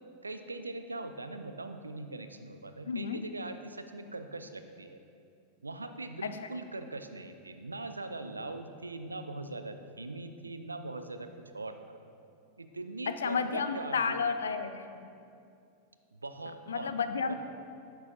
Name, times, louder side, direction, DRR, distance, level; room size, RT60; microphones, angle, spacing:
voice 1, 0.2-5.0 5.6-12.0 12.6-14.2 16.1-16.9 17.3-17.4, right 2 dB, 80° right, 8 dB, 0.3 m, -41 dB
voice 2, 2.8-3.2 6.2-6.5 13.1-15.1 16.7-17.3, left 5 dB, 70° left, 9 dB, 0.3 m, -32 dB
9.5 x 4.6 x 2.6 m, 2.5 s
figure-of-eight pair, 90°, 0 cm